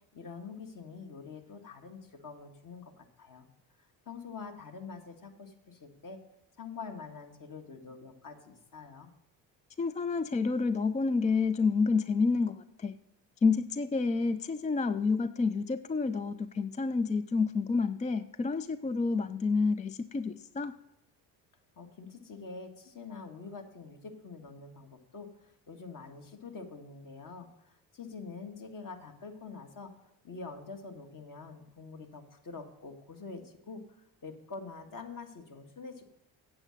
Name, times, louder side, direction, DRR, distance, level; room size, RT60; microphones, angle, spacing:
voice 1, 0.1-3.5 3.8-6.2 6.6-9.1 21.7-29.9 30.2-36.1, left 4 dB, 40° left, 4 dB, 1.8 m, -46 dB
voice 2, 9.8-13.0 13.4-20.7, left 4 dB, 15° left, 12 dB, 0.3 m, -29 dB
8.7 x 7.5 x 6.4 m, 0.82 s
hypercardioid pair, 60°, 48 cm